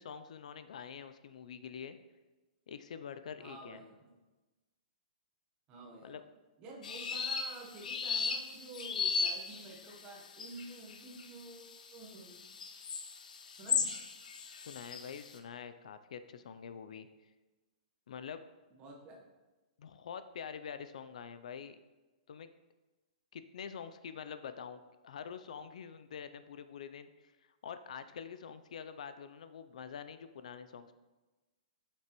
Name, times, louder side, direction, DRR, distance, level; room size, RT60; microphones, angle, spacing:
voice 1, 0.0-2.0 2.7-3.8 6.0-6.2 14.5-17.1 18.1-18.4 19.8-21.8 22.3-22.5 23.3-27.3 27.6-31.0, left 7 dB, 60° left, 11 dB, 0.4 m, -46 dB
voice 2, 3.4-4.1 5.7-6.2 6.6-12.4 13.5-13.9 18.7-19.2, right 2 dB, 20° right, -1 dB, 1.0 m, -50 dB
sound 1, 6.8-15.2, left 5 dB, 80° left, 0.8 m, -36 dB
7.8 x 5.9 x 3.0 m, 1.2 s
hypercardioid pair, 175°, 4 cm